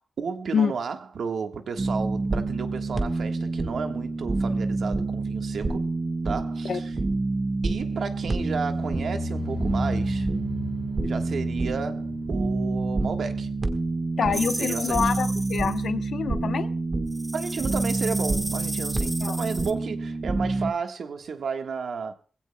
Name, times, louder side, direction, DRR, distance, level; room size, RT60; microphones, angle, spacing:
voice 1, 0.2-5.9 6.2-6.9 7.6-10.3 11.0-13.5 14.2-15.1 17.3-22.1, right 5 dB, 80° right, 1.4 m, -33 dB
sound 1, 1.8-20.7, right 3 dB, 30° right, 1.3 m, -28 dB
sound 2, 8.1-15.2 15.5-15.9 16.3-16.4, left 3 dB, 50° left, 2.6 m, -38 dB
voice 2, 14.2-16.7 19.2-19.4, left 7 dB, 85° left, 0.9 m, -26 dB
sound 3, 14.3-15.8 17.1-19.7, right 1 dB, 10° right, 1.0 m, -34 dB
22.5 x 16.0 x 2.2 m
wide cardioid pair, 165°, 0 cm